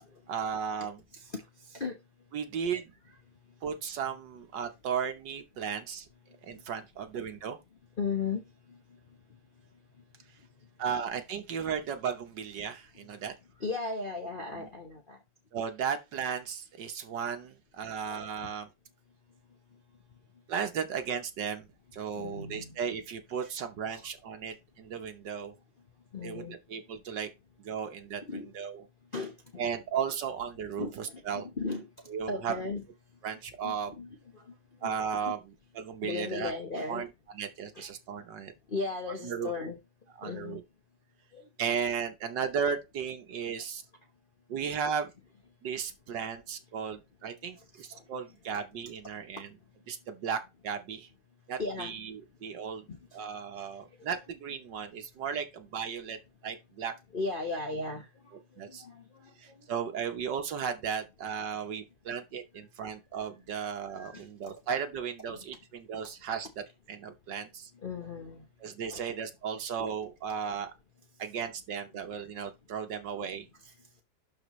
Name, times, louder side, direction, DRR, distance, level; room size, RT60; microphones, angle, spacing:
voice 1, 0.3-1.0 2.3-2.9 3.6-6.1 6.4-7.6 10.8-13.3 14.5-14.6 15.5-18.7 20.5-21.7 21.9-25.5 26.2-27.3 27.6-28.8 29.6-31.5 32.1-32.5 33.2-33.9 34.8-36.5 36.9-37.1 37.3-38.5 39.2-39.5 40.2-40.6 41.6-43.8 44.5-45.1 45.6-49.5 49.9-51.1 51.5-52.9 53.1-56.9 58.6-58.9 59.4-66.5 66.9-67.7 68.6-70.7 71.2-73.5, right 7 dB, 60° right, 1.4 m, -35 dB
voice 2, 1.7-2.0 6.5-6.6 8.0-8.4 8.7-8.8 13.6-15.2 18.1-18.3 22.1-22.8 23.4-23.5 23.8-24.0 26.1-26.6 28.2-28.5 29.1-29.7 30.8-31.9 32.3-32.8 33.6-34.4 34.8-35.0 35.3-35.4 36.0-37.0 37.7-37.8 38.7-39.8 40.2-40.6 41.3-41.5 47.7-48.0 48.5-48.6 51.6-51.9 52.9-53.0 54.0-54.1 57.1-58.1 58.7-59.6 63.9-64.3 65.3-65.4 67.8-68.5 68.9-69.0, left 4 dB, 40° left, 0.7 m, -36 dB
12.0 x 4.3 x 3.1 m
omnidirectional pair, 2.4 m